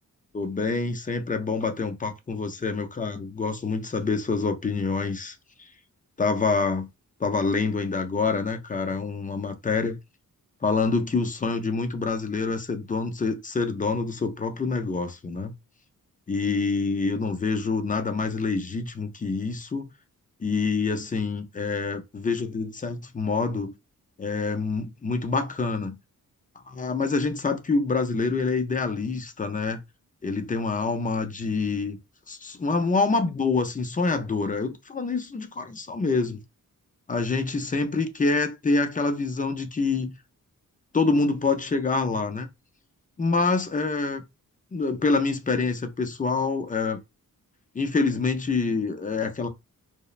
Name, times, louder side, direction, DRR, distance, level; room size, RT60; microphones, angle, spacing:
voice 1, 0.3-5.4 6.2-6.9 7.2-10.0 10.6-15.5 16.3-19.9 20.4-23.7 24.2-26.0 26.7-29.8 30.2-32.0 32.3-36.4 37.1-40.1 40.9-42.5 43.2-44.2 44.7-47.0 47.7-49.5, left 4 dB, 25° left, 0.3 m, -26 dB
2.9 x 2.0 x 2.3 m
wide cardioid pair, 120°, 34 cm